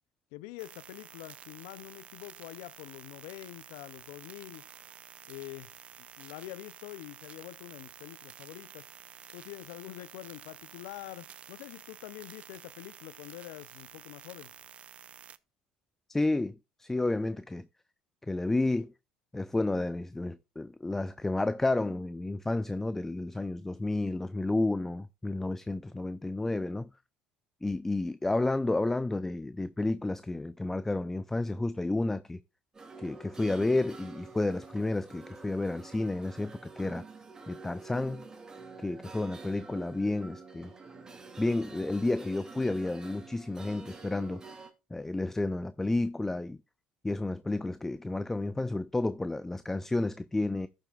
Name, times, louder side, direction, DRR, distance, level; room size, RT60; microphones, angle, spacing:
voice 1, 0.3-4.6 5.3-5.7 6.0-8.9 9.3-14.5, left 17 dB, 85° left, 0.5 m, -45 dB
sound 1, 0.6-15.4, right 8 dB, 40° right, 0.6 m, -51 dB
voice 2, 16.1-17.7 18.3-18.9 19.3-26.9 27.6-32.4 33.0-37.0 37.5-38.2 38.8-40.7 41.4-44.4 44.9-46.6 47.0-50.7, left 2 dB, 10° left, 0.5 m, -31 dB
sound 2, 32.7-44.7, right 4 dB, 20° right, 2.5 m, -48 dB
13.5 x 7.6 x 2.4 m
supercardioid pair, 90°, 3 cm